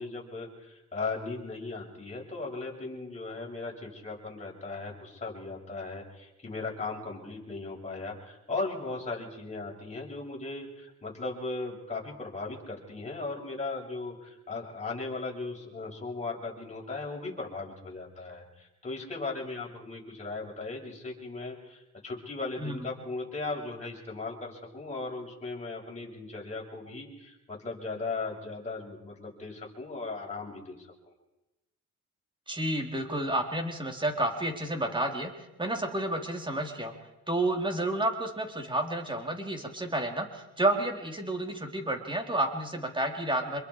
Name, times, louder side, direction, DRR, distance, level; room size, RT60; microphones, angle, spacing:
voice 1, 0.0-30.9, left 3 dB, 25° left, -2 dB, 7.2 m, -37 dB
voice 2, 32.5-35.3 35.6-36.9 37.3-43.6, right 1 dB, 15° right, 3 dB, 3.9 m, -30 dB
26.5 x 22.5 x 5.0 m, 0.96 s
cardioid pair, 90°, 30 cm